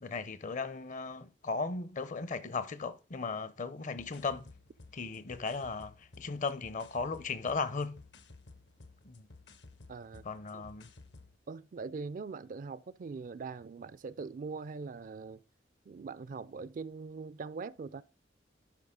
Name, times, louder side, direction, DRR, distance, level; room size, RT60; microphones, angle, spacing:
voice 1, 0.0-4.5 4.9-8.0 9.0-9.3 10.2-10.9, left 4 dB, 45° left, 0.6 m, -36 dB
sound 1, 4.0-11.4, left 3 dB, 70° left, 0.9 m, -56 dB
voice 2, 9.9-10.3 10.5-10.6 11.5-15.4 15.9-18.0, right 4 dB, 50° right, 0.4 m, -42 dB
12.0 x 5.4 x 3.7 m
head